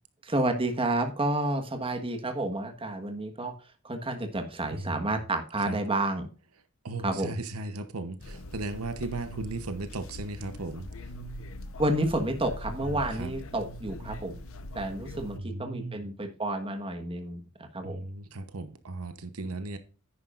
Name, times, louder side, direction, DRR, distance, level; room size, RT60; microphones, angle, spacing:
voice 1, 0.2-3.5 3.8-6.3 7.0-7.3 11.8-14.3 14.7-18.0, right 1 dB, 25° right, 1.5 m, -30 dB
voice 2, 4.7-5.0 5.7-5.8 6.8-10.9 12.8-13.3 15.3-16.1 17.8-19.8, right 2 dB, 75° right, 1.0 m, -36 dB
sound 1, 8.2-15.4, left 1 dB, 65° left, 1.0 m, -41 dB
10.0 x 9.5 x 2.5 m
head